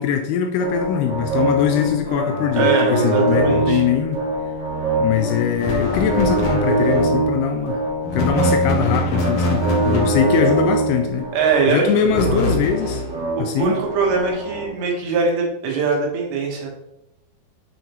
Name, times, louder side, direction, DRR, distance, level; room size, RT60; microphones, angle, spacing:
voice 1, 0.0-4.2 5.0-7.8 8.1-11.3 11.7-13.0 13.4-13.8, left 8 dB, 80° left, 5 dB, 2.4 m, -22 dB
sound 1, 0.6-14.6, right 1 dB, 45° right, 2.2 m, -23 dB
voice 2, 2.5-3.8 11.3-12.5 13.4-16.7, right 4 dB, 85° right, -1 dB, 3.6 m, -21 dB
sound 2, 5.6-7.1 8.0-10.6 12.0-13.2, equal, 60° left, 2.0 m, -24 dB
7.8 x 5.0 x 3.0 m, 0.87 s
omnidirectional pair, 4.9 m